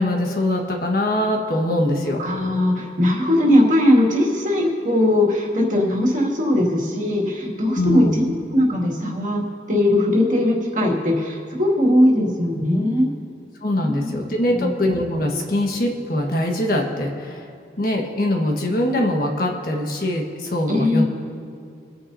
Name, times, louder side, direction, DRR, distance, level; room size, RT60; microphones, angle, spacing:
voice 1, 0.0-2.2 7.7-8.2 13.6-17.5 17.8-21.0, left 1 dB, 50° left, 1 dB, 1.5 m, -22 dB
voice 2, 2.2-13.1 13.8-14.2 14.5-14.7 20.7-21.0, left 1 dB, 45° right, -3 dB, 2.2 m, -19 dB
27.5 x 9.5 x 2.7 m, 2.5 s
head